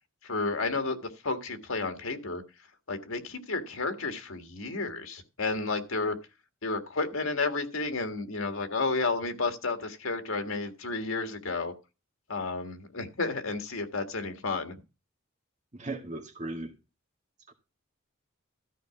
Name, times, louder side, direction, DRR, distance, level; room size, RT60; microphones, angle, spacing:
voice 1, 0.2-2.4 2.9-6.2 6.6-11.7 12.3-14.8, left 3 dB, 90° left, 1.8 m, -31 dB
voice 2, 15.7-16.7 17.5-17.6, right 2 dB, 35° right, 1.9 m, -37 dB
13.5 x 4.9 x 5.9 m
head